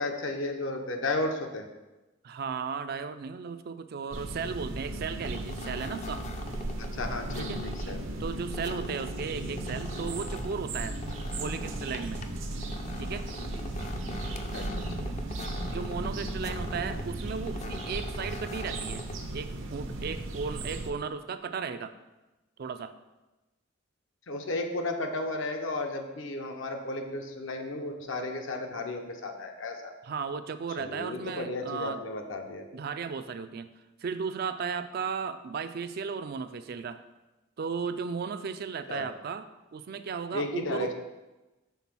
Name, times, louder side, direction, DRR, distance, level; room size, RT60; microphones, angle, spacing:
voice 1, 0.0-1.7 6.8-8.1 14.5-14.7 15.0-15.1 24.3-29.9 30.8-32.7 38.9-39.1 40.3-40.9, left 2 dB, 75° left, 4 dB, 0.8 m, -34 dB
voice 2, 2.2-6.3 7.4-7.6 8.2-11.0 11.4-12.3 13.0-13.3 15.7-21.9 22.6-23.0 30.0-32.0 32.7-33.7 34.0-37.0 37.6-40.9, right 5 dB, 50° right, 11 dB, 0.4 m, -35 dB
sound 1, 4.1-20.9, right 1 dB, 80° right, 0.8 m, -36 dB
sound 2, 5.2-19.6, left 2 dB, 35° left, 0.4 m, -44 dB
5.7 x 3.7 x 6.0 m, 1.1 s
head